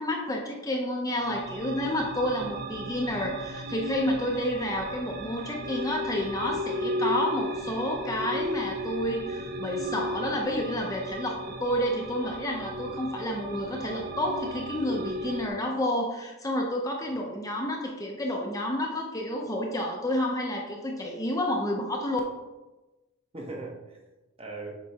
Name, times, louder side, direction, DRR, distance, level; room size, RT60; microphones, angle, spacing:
voice 1, 0.0-22.2, left 1 dB, 15° left, 0 dB, 0.6 m, -30 dB
sound 1, 1.2-15.5, equal, 45° right, 0.5 m, -35 dB
voice 2, 12.7-13.0 17.1-17.3 23.3-24.0 24.4-24.7, right 2 dB, 25° right, 0 dB, 0.9 m, -41 dB
7.5 x 4.5 x 2.8 m, 1.1 s
head